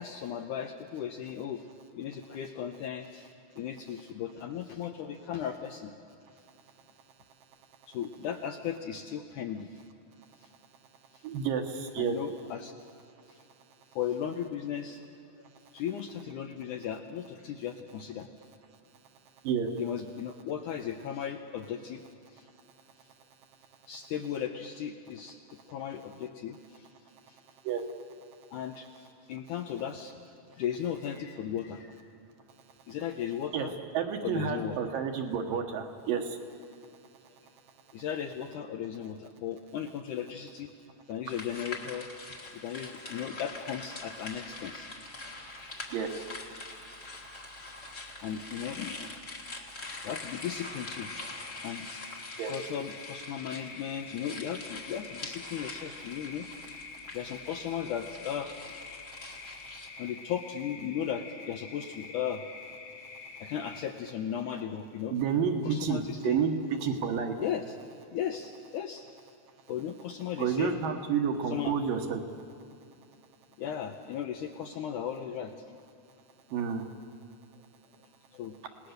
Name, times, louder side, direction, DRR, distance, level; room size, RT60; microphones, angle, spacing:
voice 1, 0.0-1.7 1.9-3.3 3.6-5.9 7.9-9.8 10.4-10.5 11.1-11.2 12.0-12.7 13.3-13.4 14.0-15.0 15.4-15.5 15.7-18.3 19.8-22.0 22.3-22.5 23.9-25.4 25.7-26.9 27.3-27.4 28.5-30.2 30.5-32.1 32.9-33.7 34.2-34.8 37.9-40.7 41.1-42.1 42.5-44.9 48.2-49.2 49.9-51.1 51.6-51.9 52.5-56.5 57.1-58.7 60.0-62.4 63.4-65.4 65.7-66.4 67.4-67.6 68.1-69.1 69.7-70.7 71.5-71.7 73.6-75.8 78.3-78.6, left 9 dB, 75° left, 5 dB, 1.9 m, -36 dB
voice 2, 6.2-8.0 10.2-12.2 13.2-14.0 15.4-15.8 18.9-19.7 22.6-23.9 25.5-25.7 27.1-28.6 32.5-33.0 33.5-33.7 33.9-38.0 45.4-48.2 49.5-50.1 52.4-52.5 57.0-57.2 59.1-60.0 63.0-63.5 65.1-67.4 69.6-69.7 70.4-72.2 76.5-76.9, right 7 dB, 70° right, 4 dB, 2.9 m, -34 dB
sound 1, 41.2-59.9, left 2 dB, 30° left, 1.4 m, -44 dB
sound 2, 50.2-63.8, left 4 dB, 50° left, 2.4 m, -47 dB
28.0 x 18.5 x 6.7 m, 2.4 s
omnidirectional pair, 4.4 m